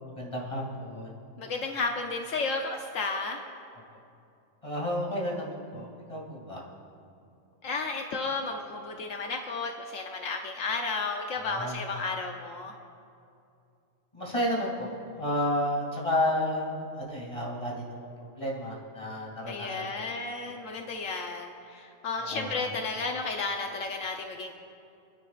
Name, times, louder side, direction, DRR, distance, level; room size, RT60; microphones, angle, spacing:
voice 1, 0.0-1.1 4.6-6.6 11.4-11.8 14.1-20.1 20.5-20.6 22.2-22.6, left 1 dB, 25° left, -3 dB, 2.4 m, -32 dB
voice 2, 1.4-3.4 7.6-12.7 19.5-24.6, left 3 dB, 75° left, 3 dB, 1.1 m, -33 dB
29.5 x 10.0 x 2.4 m, 2.6 s
omnidirectional pair, 1.4 m